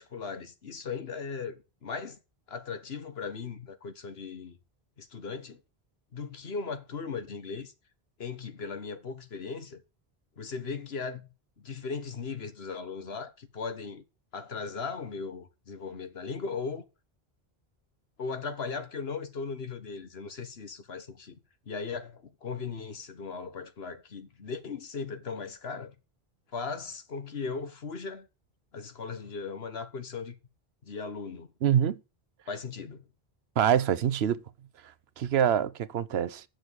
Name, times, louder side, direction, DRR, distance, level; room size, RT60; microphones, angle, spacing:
voice 1, 0.0-2.2 2.5-4.6 5.0-5.6 6.1-7.7 8.2-9.8 10.4-11.3 11.6-14.0 14.3-16.8 18.2-21.4 21.7-25.9 26.5-28.3 28.7-30.3 30.8-31.5 32.5-33.0, left 5 dB, 80° left, 1.5 m, -38 dB
voice 2, 31.6-32.0 33.6-34.4 35.2-36.4, right 9 dB, 85° right, 0.9 m, -25 dB
7.5 x 6.7 x 8.0 m
omnidirectional pair, 1.0 m